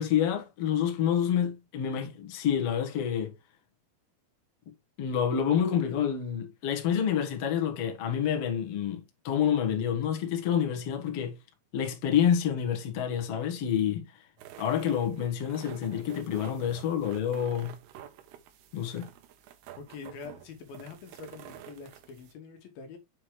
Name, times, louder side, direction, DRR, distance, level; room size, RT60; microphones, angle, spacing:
voice 1, 0.0-3.3 5.0-11.4 11.7-14.2 14.6-17.8 18.7-19.1, left 9 dB, 55° left, 1.9 m, -28 dB
sound 1, 14.4-22.3, right 11 dB, 85° right, 2.9 m, -49 dB
voice 2, 19.8-23.0, left 5 dB, 75° left, 3.0 m, -45 dB
7.6 x 4.8 x 3.2 m
omnidirectional pair, 4.4 m